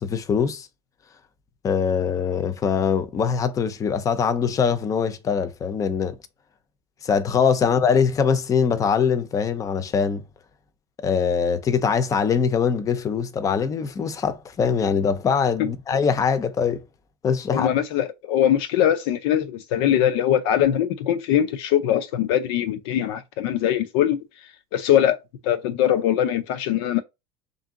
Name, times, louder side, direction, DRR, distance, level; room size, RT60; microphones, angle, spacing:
voice 1, 0.0-0.7 1.6-6.2 7.0-10.2 11.0-16.8 17.2-17.8, left 6 dB, 25° left, 0.6 m, -22 dB
voice 2, 17.5-25.2 25.4-27.0, left 10 dB, 75° left, 0.5 m, -22 dB
3.5 x 2.6 x 3.7 m
supercardioid pair, 130°, 13 cm